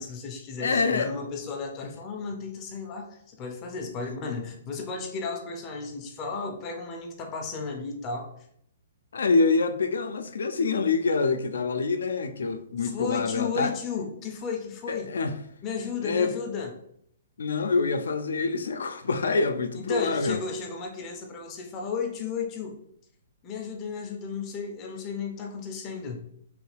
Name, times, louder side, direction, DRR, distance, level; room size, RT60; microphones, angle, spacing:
voice 1, 0.0-8.3 12.8-15.1 15.6-16.7 19.7-22.8 23.4-26.2, left 5 dB, 25° left, 0.5 m, -34 dB
voice 2, 0.6-1.1 9.1-13.7 14.9-15.4 16.0-16.3 17.4-20.4, left 4 dB, 80° left, 0.4 m, -26 dB
3.1 x 2.3 x 3.2 m
hypercardioid pair, 150°, 0 cm